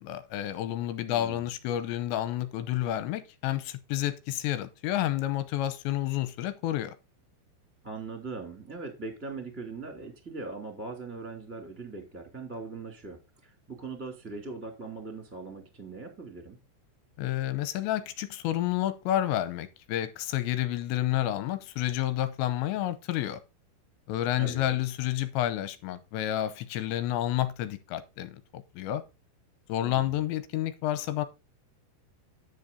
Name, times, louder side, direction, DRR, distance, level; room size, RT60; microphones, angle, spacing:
voice 1, 0.0-6.9 17.2-23.4 24.1-28.4 28.8-29.1 29.7-31.3, left 13 dB, 80° left, 2.9 m, -30 dB
voice 2, 1.1-1.5 7.8-16.6 24.3-24.8 29.8-30.2, right 3 dB, 5° right, 1.5 m, -40 dB
10.0 x 6.7 x 4.0 m
omnidirectional pair, 5.5 m